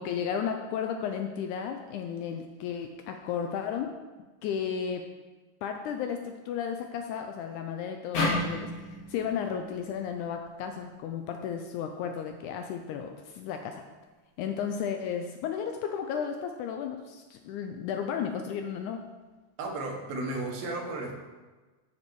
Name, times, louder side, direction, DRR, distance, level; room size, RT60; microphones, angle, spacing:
voice 1, 0.0-3.9 4.4-5.1 5.6-13.8 14.4-19.0, left 7 dB, 80° left, 5 dB, 1.8 m, -34 dB
sound 1, 8.1-11.4, left 2 dB, 60° left, 3.4 m, -33 dB
voice 2, 19.6-21.1, right 2 dB, 85° right, 1 dB, 3.0 m, -34 dB
8.8 x 7.5 x 4.6 m, 1.3 s
omnidirectional pair, 3.9 m